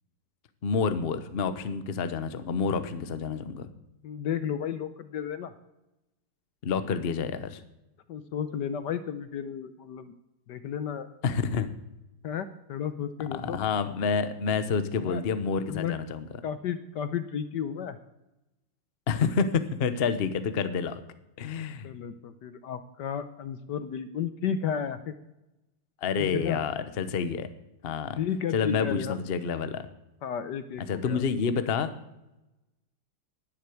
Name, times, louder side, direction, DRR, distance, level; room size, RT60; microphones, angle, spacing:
voice 1, 0.6-3.7 6.6-7.6 11.2-11.7 13.3-16.2 19.1-21.0 21.4-21.9 26.0-27.5 27.8-28.2 28.5-29.9 30.9-31.9, left 5 dB, 40° left, 11 dB, 0.9 m, -28 dB
voice 2, 4.0-5.5 8.1-10.1 10.5-11.1 12.2-13.6 15.0-15.2 15.7-15.9 16.4-18.0 21.8-25.1 26.2-26.6 28.2-29.2 30.2-31.2, left 8 dB, 65° left, 11 dB, 1.2 m, -33 dB
11.5 x 10.0 x 9.3 m, 0.95 s
omnidirectional pair, 2.2 m